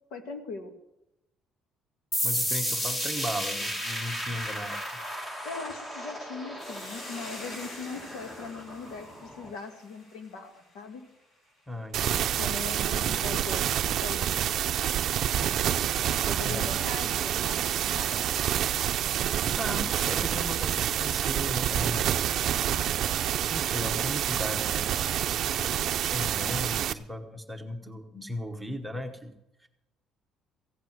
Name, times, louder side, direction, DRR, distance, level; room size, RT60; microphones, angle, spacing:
voice 1, 0.1-0.7 5.4-11.0 12.4-14.7 16.2-18.3, left 4 dB, 90° left, 5 dB, 2.3 m, -40 dB
sound 1, 2.1-9.5, equal, 15° left, 1.7 m, -34 dB
voice 2, 2.2-5.0 11.7-12.3 16.4-16.7 19.6-22.4 23.5-29.7, equal, 5° right, 4 dB, 1.1 m, -37 dB
Hiss, 6.6-11.1, left 1 dB, 40° left, 5.0 m, -46 dB
sound 2, 11.9-26.9, right 10 dB, 50° right, 0.5 m, -28 dB
16.0 x 8.3 x 7.6 m, 0.90 s
cardioid pair, 165°, 0 cm